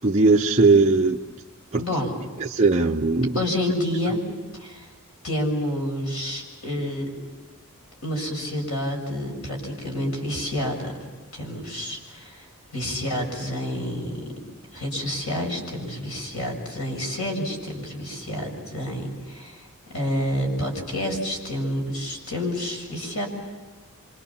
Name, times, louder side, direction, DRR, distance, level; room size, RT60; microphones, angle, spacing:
voice 1, 0.0-1.2 1.7-1.8 2.5-3.3, right 3 dB, 30° right, -1 dB, 0.7 m, -18 dB
voice 2, 1.8-2.2 3.3-4.2 4.5-4.9 5.2-7.1 8.0-10.9 11.3-12.5 12.7-14.2 14.7-19.7 19.9-23.3, equal, 75° left, 1 dB, 6.9 m, -29 dB
26.5 x 26.0 x 7.2 m, 1.4 s
head